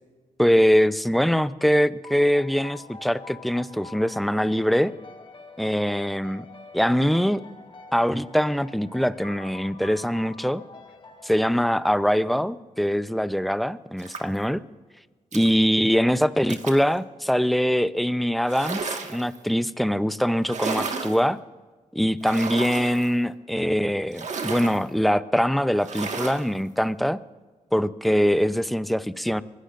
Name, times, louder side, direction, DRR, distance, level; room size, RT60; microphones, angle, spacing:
voice 1, 0.4-4.9 5.6-6.4 6.7-7.4 7.9-10.6 11.2-14.6 15.3-21.4 21.9-27.2 27.7-29.4, equal, ahead, 14 dB, 0.7 m, -23 dB
sound 1, 2.0-12.4, left 4 dB, 40° left, 2.3 m, -46 dB
sound 2, 14.0-14.4 15.3-15.5 16.5-16.9 18.4-19.4 20.4-21.2 22.2-23.1 24.1-24.8 25.8-26.5, right 4 dB, 60° right, 1.8 m, -32 dB
24.0 x 16.5 x 2.6 m, 1.3 s
cardioid pair, 60°, 14 cm